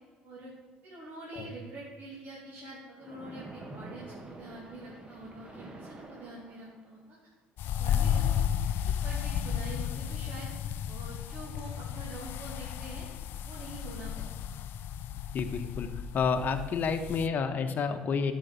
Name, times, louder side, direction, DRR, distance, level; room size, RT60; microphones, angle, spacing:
voice 1, 0.8-7.2 7.6-8.5 8.8-10.5 10.9-13.1 13.4-14.5, right 1 dB, 45° right, -6 dB, 2.5 m, -45 dB
Splash splatter, 3.0-7.0, right 2 dB, 25° right, 1.4 m, -47 dB
sound 1, 7.6-17.3, left 9 dB, 60° left, 0.4 m, -33 dB
voice 2, 15.3-15.9 16.1-18.3, left 5 dB, 45° left, 7 dB, 1.1 m, -29 dB
12.0 x 5.2 x 5.3 m, 1.4 s
supercardioid pair, 80°, 4 cm